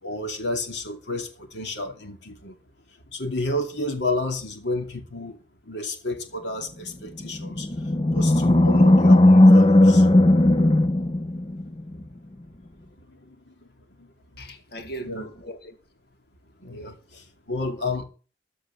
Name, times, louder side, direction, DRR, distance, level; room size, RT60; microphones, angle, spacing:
voice 1, 0.0-2.6 3.1-10.1 13.0-13.7 14.0-14.5 15.0-15.3 16.6-18.0, left 2 dB, 75° left, 2.6 m, -31 dB
Animal, 7.3-11.8, left 1 dB, 30° left, 0.7 m, -16 dB
voice 2, 14.4-15.8 16.6-17.2 17.6-17.8, right 1 dB, 60° left, 2.2 m, -40 dB
14.0 x 5.1 x 9.1 m
head